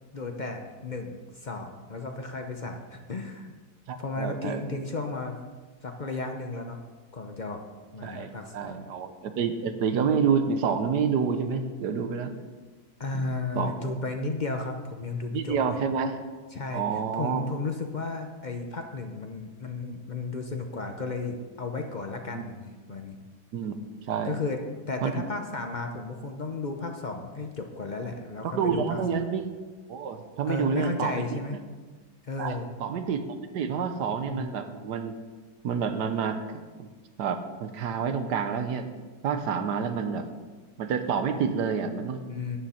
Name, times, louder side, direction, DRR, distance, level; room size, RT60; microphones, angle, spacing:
voice 1, 0.1-3.5 4.0-5.4 5.8-6.8 7.1-7.6 7.9-8.9 13.0-15.8 16.5-16.8 17.1-23.2 24.2-24.6 24.9-29.2 30.5-31.6 32.2-32.7 34.2-34.5 42.3-42.6, left 3 dB, 45° left, 4 dB, 0.6 m, -34 dB
voice 2, 3.9-4.8 8.0-12.3 13.5-13.7 15.3-16.2 16.7-17.4 22.3-22.4 23.5-23.8 24.1-24.4 25.0-25.1 28.4-29.4 29.9-31.2 32.4-33.2 33.5-35.1 35.6-36.9 37.2-38.9 39.2-40.3 40.8-42.2, right 6 dB, 75° right, 8 dB, 1.4 m, -28 dB
12.5 x 9.6 x 4.3 m, 1.4 s
omnidirectional pair, 1.8 m